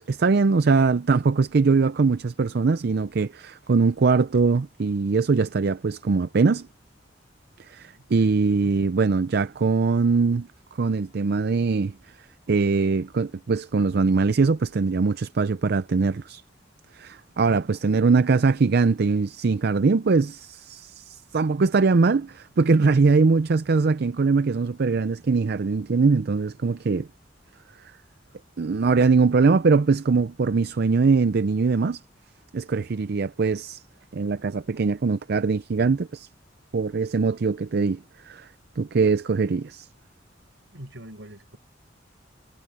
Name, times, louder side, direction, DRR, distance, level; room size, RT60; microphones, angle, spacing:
voice 1, 0.0-6.7 7.7-10.5 10.8-11.9 12.5-16.4 16.9-27.1 28.6-32.0 32.5-33.8 34.1-36.3 36.7-38.5 38.8-39.9, right 4 dB, 60° right, 0.5 m, -22 dB
voice 2, 7.9-8.7 40.7-41.6, equal, 75° right, 6.8 m, -44 dB
head